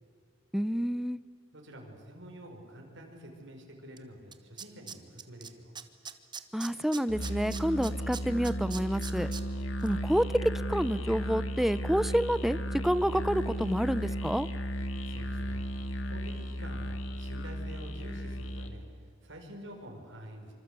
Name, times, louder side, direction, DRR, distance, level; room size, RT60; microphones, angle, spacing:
voice 1, 0.5-1.2 6.5-9.3 9.8-10.4 10.7-12.6 12.8-14.5, equal, ahead, 15 dB, 0.7 m, -28 dB
voice 2, 1.5-5.8 15.0-15.6 16.0-20.5, equal, 65° right, 2 dB, 5.7 m, -48 dB
Tools, 4.0-4.1 4.3-5.5 5.8-9.4 9.8-9.9, right 6 dB, 25° right, 1.3 m, -41 dB
Musical instrument, 7.1-18.8, equal, 75° left, 2.3 m, -35 dB
26.0 x 25.5 x 8.3 m, 2.1 s
head